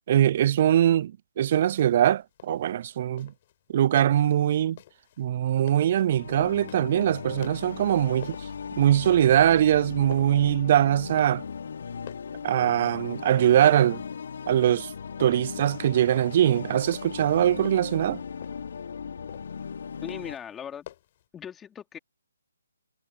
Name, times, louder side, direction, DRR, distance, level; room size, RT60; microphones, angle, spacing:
voice 1, 0.1-3.3 3.7-4.8 5.2-8.4 8.8-11.4 12.4-14.0 14.5-14.9 15.2-18.2, right 11 dB, 40° right, 0.5 m, -22 dB
sound 1, 2.1-21.3, left 13 dB, 35° left, 7.3 m, -50 dB
sound 2, 5.8-20.4, left 6 dB, 55° left, 1.2 m, -38 dB
voice 2, 20.0-20.9 21.3-22.0, left 8 dB, 10° left, 3.7 m, -39 dB
figure-of-eight pair, 140°, 0 cm